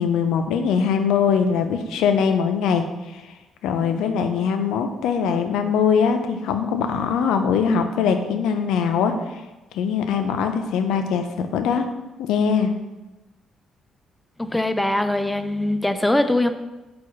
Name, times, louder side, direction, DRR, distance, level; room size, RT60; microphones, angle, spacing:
voice 1, 0.0-2.9 3.1-3.2 3.6-9.1 9.7-11.9 12.2-12.7, left 6 dB, 85° left, 7 dB, 0.4 m, -21 dB
voice 2, 14.4-16.5, left 1 dB, 10° left, 9 dB, 0.3 m, -22 dB
4.5 x 2.3 x 4.7 m, 1.1 s
supercardioid pair, 70°, 0 cm